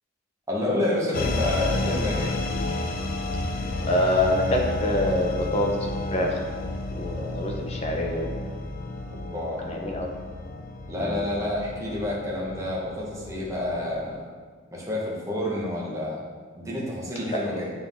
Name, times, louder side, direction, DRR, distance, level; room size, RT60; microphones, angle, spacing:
voice 1, 0.5-2.3 9.1-9.9 10.9-14.3 14.7-16.2 16.6-17.7, left 1 dB, 15° right, -5 dB, 1.2 m, -29 dB
sound 1, 1.1-14.1, left 2 dB, 50° left, 0.4 m, -31 dB
voice 2, 3.9-6.3 7.0-8.3 9.7-10.1 11.0-11.2 17.3-17.4, left 1 dB, 35° left, 0 dB, 0.8 m, -25 dB
7.4 x 3.8 x 3.6 m, 1.5 s
head